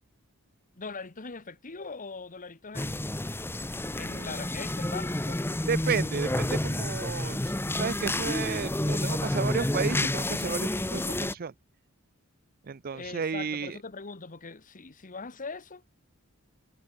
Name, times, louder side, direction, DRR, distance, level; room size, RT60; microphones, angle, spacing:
voice 1, 0.8-3.0 3.9-5.5 12.9-15.8, left 4 dB, 40° left, 1.3 m, -41 dB
sound 1, 2.7-11.3, left 1 dB, 10° left, 0.9 m, -30 dB
voice 2, 5.7-11.5 12.7-13.8, right 5 dB, 45° right, 0.5 m, -33 dB
head